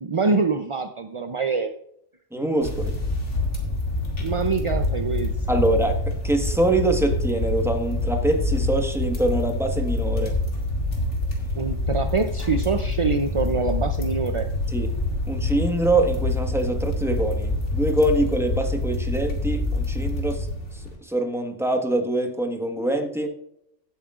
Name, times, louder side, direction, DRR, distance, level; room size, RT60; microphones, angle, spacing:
voice 1, 0.0-1.7 4.2-5.6 11.6-14.5, right 4 dB, 45° right, 0.4 m, -25 dB
voice 2, 2.3-3.0 5.5-10.4 14.7-15.0 15.3-20.5 20.7-23.3, right 1 dB, ahead, 1.3 m, -24 dB
sound 1, 2.6-20.9, left 2 dB, 75° left, 2.7 m, -26 dB
16.5 x 8.5 x 2.4 m
omnidirectional pair, 1.2 m